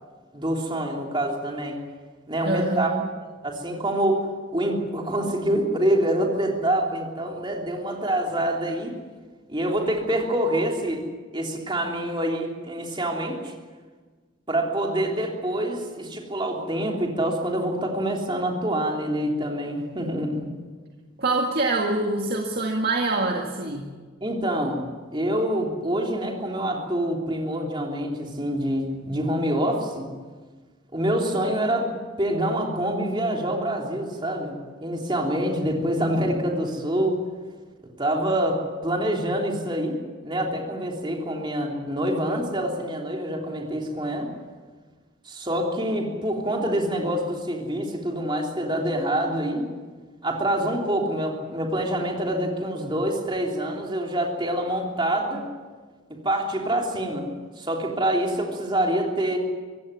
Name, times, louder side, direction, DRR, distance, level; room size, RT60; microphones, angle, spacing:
voice 1, 0.3-1.8 2.3-2.9 3.4-4.2 4.5-9.0 9.5-11.0 11.3-13.5 14.5-20.5 24.2-30.1 30.9-31.9 32.2-34.5 34.8-37.2 38.0-40.0 40.2-44.3 45.2-49.7 50.2-55.5 56.1-59.4, right 1 dB, 25° right, 0 dB, 3.3 m, -26 dB
voice 2, 2.4-3.0 21.2-23.9, right 2 dB, 50° right, 0 dB, 1.9 m, -25 dB
25.0 x 16.0 x 9.7 m, 1.4 s
head